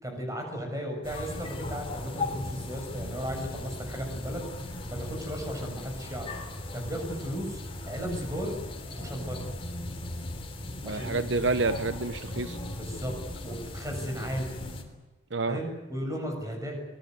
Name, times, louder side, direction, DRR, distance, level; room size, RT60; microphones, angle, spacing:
voice 1, 0.0-4.4 4.9-6.3 6.7-7.6 7.9-8.6 9.0-9.5 10.8-11.3 12.8-13.2 13.4-14.5 15.5-16.8, equal, 15° right, 3 dB, 6.9 m, -35 dB
sound 1, 1.0-14.8, left 1 dB, 30° left, 3.5 m, -37 dB
voice 2, 10.8-12.6 15.3-15.6, right 3 dB, 65° right, 10 dB, 1.0 m, -28 dB
24.5 x 20.0 x 9.5 m, 1.2 s
head